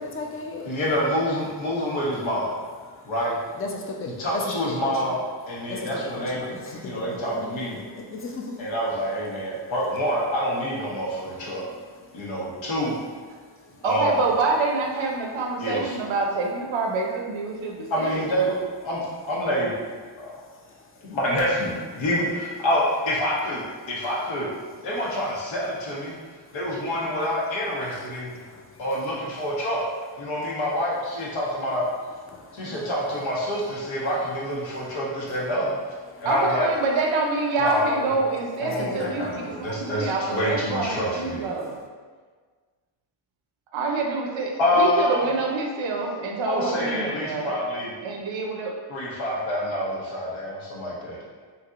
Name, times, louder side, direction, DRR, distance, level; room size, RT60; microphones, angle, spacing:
voice 1, 0.0-0.8 2.9-5.1 5.6-9.7 11.0-12.7 13.0-13.9 15.7-16.2 17.5-17.9 20.0-21.2 21.9-22.0 24.7-25.0 26.0-27.0 27.8-29.6 30.4-30.6 31.7-33.2 33.6-33.7 34.7-35.5 36.1-36.3 38.6-39.9 41.6-41.9, left 3 dB, 30° left, 2 dB, 0.5 m, -40 dB
voice 2, 0.7-2.5 3.0-3.4 4.2-5.2 5.5-6.4 6.8-7.8 8.6-11.6 12.1-12.9 13.8-14.3 15.6-16.0 17.9-18.6 18.8-19.7 20.2-20.3 21.0-24.5 24.8-26.1 26.5-28.3 28.8-29.8 30.2-31.9 32.5-35.8 36.2-36.7 37.6-38.1 38.6-41.5 44.6-45.3 46.5-47.9 48.9-51.2, equal, 75° left, -5 dB, 1.1 m, -27 dB
voice 3, 13.8-18.2 32.6-32.7 36.3-41.8 43.7-47.5 48.0-48.8, right 3 dB, 75° right, 1 dB, 0.7 m, -26 dB
3.3 x 2.7 x 2.4 m, 1.5 s
cardioid pair, 85°, 46 cm